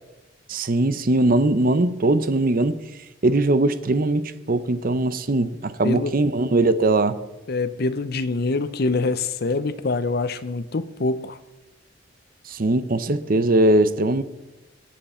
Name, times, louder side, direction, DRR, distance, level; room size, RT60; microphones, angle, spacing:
voice 1, 0.5-2.8 3.2-7.2 12.5-14.2, right 2 dB, 50° right, 0.7 m, -20 dB
voice 2, 7.5-11.4, left 3 dB, 55° left, 0.7 m, -25 dB
20.0 x 7.6 x 4.4 m
head